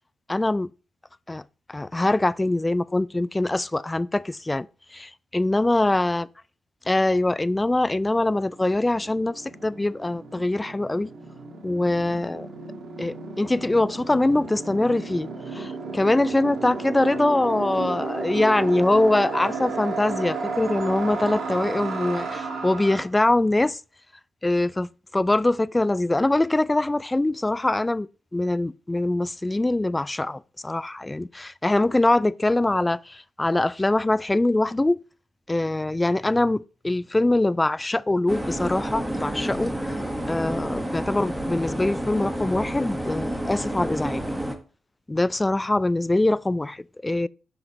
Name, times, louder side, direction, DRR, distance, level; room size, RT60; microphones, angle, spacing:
voice 1, 0.3-0.7 1.3-1.4 1.7-4.7 4.9-6.3 6.9-11.1 11.6-12.5 13.0-23.8 24.4-28.1 28.3-35.0 35.5-40.0 40.3-44.2 45.1-47.3, left 2 dB, 20° left, 0.3 m, -23 dB
sound 1, 7.5-7.6 7.8-23.0, right 4 dB, 65° right, 1.5 m, -33 dB
sound 2, 38.3-44.6, right 1 dB, 10° right, 1.4 m, -29 dB
7.6 x 5.8 x 3.0 m
hypercardioid pair, 45°, 0 cm